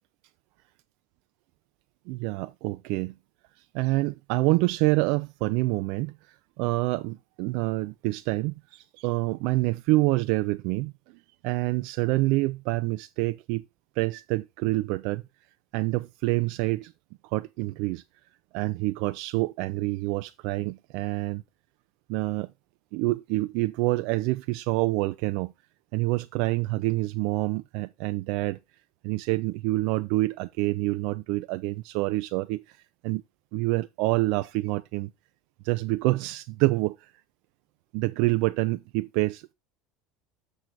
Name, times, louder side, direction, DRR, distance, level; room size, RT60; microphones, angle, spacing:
voice 1, 2.1-3.1 3.7-10.9 11.4-13.6 14.0-15.2 15.7-16.9 17.2-18.0 18.5-21.4 22.1-22.5 22.9-25.5 25.9-28.6 29.0-32.8 33.0-33.2 33.5-35.1 35.6-37.1 37.9-39.5, right 21 dB, 70° right, 0.3 m, -27 dB
6.4 x 6.2 x 4.0 m
hypercardioid pair, 90°, 0 cm